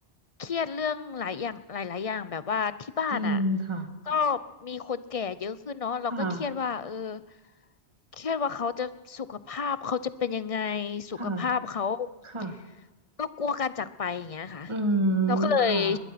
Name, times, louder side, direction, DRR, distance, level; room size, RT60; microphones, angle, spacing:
voice 1, 0.4-3.4 4.1-7.2 8.1-12.1 13.2-14.7 15.3-16.0, left 6 dB, 35° left, 15 dB, 0.7 m, -30 dB
voice 2, 3.1-3.9 6.1-6.4 11.2-11.5 12.2-12.5 14.7-16.0, right 1 dB, 25° right, 6 dB, 1.9 m, -28 dB
22.0 x 20.0 x 5.9 m, 1.1 s
omnidirectional pair, 1.1 m